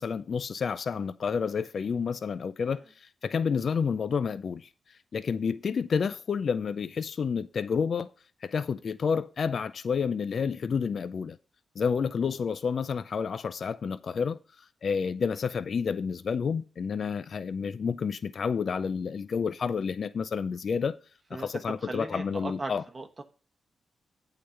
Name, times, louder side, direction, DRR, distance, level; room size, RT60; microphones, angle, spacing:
voice 1, 0.0-4.7 5.1-8.1 8.4-11.4 11.8-14.4 14.8-21.0 21.3-22.8, left 6 dB, 60° left, 0.4 m, -30 dB
voice 2, 21.8-23.2, right 2 dB, 30° right, 1.0 m, -38 dB
8.5 x 3.9 x 6.9 m
cardioid pair, 65°, 0 cm